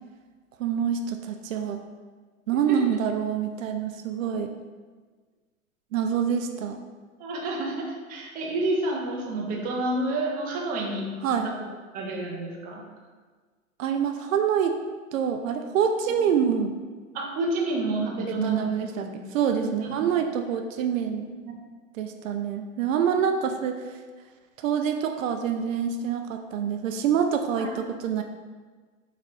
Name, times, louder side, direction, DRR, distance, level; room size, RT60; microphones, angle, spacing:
voice 1, 0.6-1.8 2.5-4.5 5.9-6.8 11.2-11.5 13.8-14.8 15.1-16.7 18.4-19.1 19.3-21.3 21.9-24.0 24.6-28.2, right 7 dB, 70° right, 6 dB, 0.5 m, -26 dB
voice 2, 7.2-11.1 11.4-11.5 11.9-12.8 17.1-19.1 19.5-20.1 21.4-21.5 27.6-27.7, right 2 dB, 20° right, -1 dB, 0.6 m, -29 dB
3.8 x 2.9 x 4.5 m, 1.5 s
hypercardioid pair, 130°, 41 cm